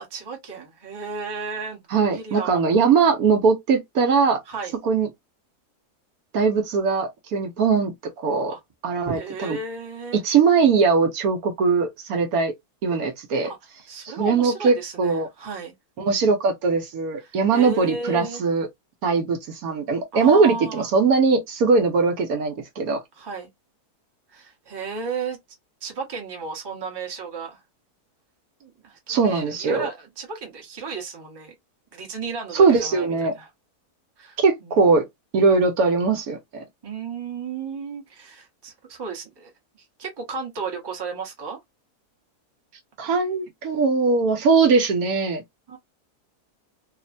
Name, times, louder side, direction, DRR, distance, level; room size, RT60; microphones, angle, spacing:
voice 1, 0.0-2.6 4.5-4.8 8.5-8.6 9.0-10.2 13.4-13.6 13.9-15.7 17.2-18.4 20.1-20.9 23.1-23.5 24.3-25.4 25.8-27.6 28.6-31.6 31.9-33.5 34.2-34.8 36.8-39.5 40.0-41.6 45.7-45.8, right 4 dB, 20° right, 0.7 m, -34 dB
voice 2, 1.9-4.4 4.8-5.1 6.3-7.9 8.2-8.5 8.8-9.6 10.1-12.5 12.8-13.5 14.0-15.3 16.0-18.7 19.0-23.0 29.1-29.9 32.5-33.3 34.4-35.0 35.3-36.6 43.0-45.4, right 4 dB, 70° right, 1.1 m, -20 dB
3.2 x 2.1 x 2.5 m
omnidirectional pair, 1.7 m